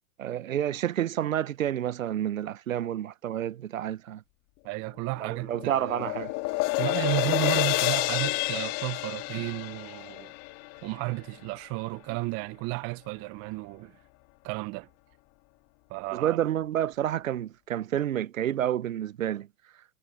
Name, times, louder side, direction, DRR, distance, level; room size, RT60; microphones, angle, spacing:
voice 1, 0.2-4.2 5.2-6.3 16.1-19.5, right 11 dB, 70° right, 1.3 m, -29 dB
voice 2, 4.6-6.1 6.8-10.3 10.8-13.9 14.4-14.9 15.9-16.4, right 26 dB, 35° right, 1.1 m, -33 dB
sound 1, 5.0-11.4, left 25 dB, 40° left, 2.1 m, -29 dB
hypercardioid pair, 110°, 41 cm